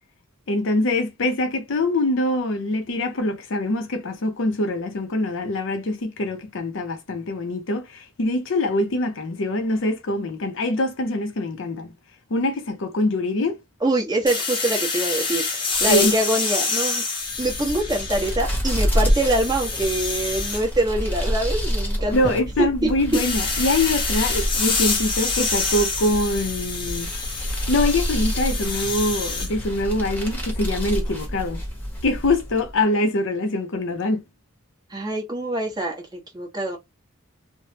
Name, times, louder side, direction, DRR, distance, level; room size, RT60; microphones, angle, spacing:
voice 1, 0.5-11.9 12.3-13.6 15.9-16.2 22.1-27.1 27.7-31.6 32.0-34.2, left 2 dB, 65° left, 0.6 m, -24 dB
voice 2, 13.8-17.0 17.4-22.2 22.6-22.7 34.9-36.8, right 1 dB, 20° right, 1.1 m, -24 dB
sound 1, 14.3-18.5 18.9-20.6 23.1-29.5, left 4 dB, 25° left, 0.8 m, -27 dB
sound 2, 17.2-32.8, equal, 10° left, 1.1 m, -28 dB
3.2 x 2.1 x 2.7 m
head